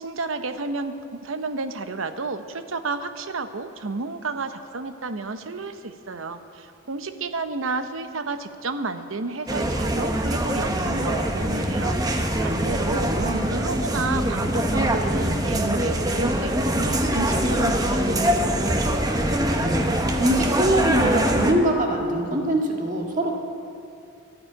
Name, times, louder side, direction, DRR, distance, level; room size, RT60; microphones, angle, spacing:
voice 1, 0.0-12.0 12.4-13.1 13.5-19.0, right 3 dB, 70° right, 10 dB, 0.8 m, -31 dB
sound 1, 9.5-21.5, right 1 dB, 20° right, 0.9 m, -23 dB
voice 2, 12.4-12.8 13.1-13.4 19.5-19.9 20.2-23.3, right 1 dB, 40° right, 1 dB, 1.8 m, -23 dB
13.0 x 9.8 x 9.0 m, 2.5 s
head